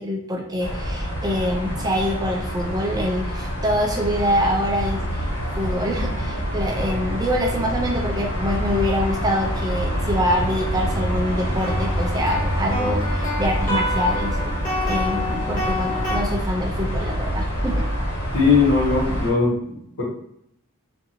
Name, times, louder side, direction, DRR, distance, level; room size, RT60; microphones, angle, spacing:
voice 1, 0.0-5.3 5.6-17.8, equal, 15° right, 0 dB, 0.3 m, -25 dB
sound 1, 0.6-19.3, equal, 55° left, 1.4 m, -26 dB
sound 2, 9.7-9.8 10.4-16.2, left 1 dB, 35° left, 0.9 m, -29 dB
voice 2, 18.3-20.0, left 4 dB, 70° left, -5 dB, 1.1 m, -19 dB
2.9 x 2.5 x 2.6 m, 0.73 s
head